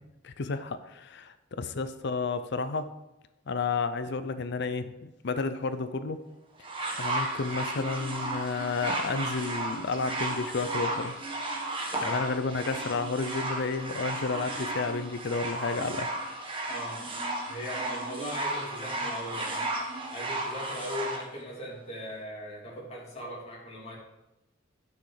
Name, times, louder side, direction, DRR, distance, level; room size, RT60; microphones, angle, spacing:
voice 1, 0.2-2.9 3.5-6.2 6.9-11.2 12.0-16.1, left 4 dB, 65° left, 11 dB, 0.6 m, -31 dB
sound 1, 6.6-21.2 22.1-22.2, right 2 dB, 30° right, 1.5 m, -34 dB
voice 2, 16.7-17.0 17.4-19.7 20.1-23.9, left 1 dB, 35° left, -4 dB, 3.1 m, -39 dB
10.5 x 6.3 x 4.9 m, 0.96 s
head